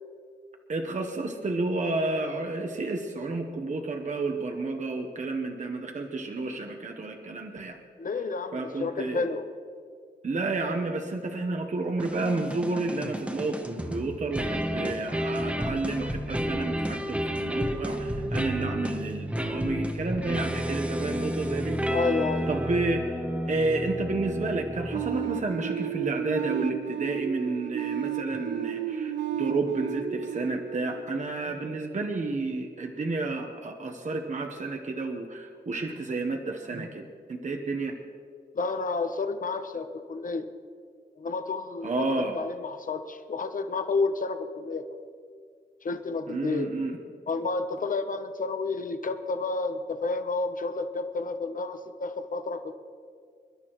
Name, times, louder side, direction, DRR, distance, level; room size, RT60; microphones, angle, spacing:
voice 1, 0.7-7.8 8.5-9.2 10.2-21.8 22.5-23.0 23.5-37.0 37.3-37.9 41.8-42.4 46.3-47.0, right 3 dB, 45° right, 3 dB, 1.0 m, -31 dB
voice 2, 8.0-9.4 21.9-22.5 38.5-40.5 41.2-45.1 45.8-46.7 47.3-52.8, left 3 dB, 50° left, 8 dB, 0.8 m, -30 dB
sound 1, 12.0-25.5, equal, 5° right, 0.9 m, -31 dB
sound 2, 24.9-31.7, right 9 dB, 85° right, 1.0 m, -33 dB
27.5 x 12.0 x 3.0 m, 2.1 s
wide cardioid pair, 165°, 18 cm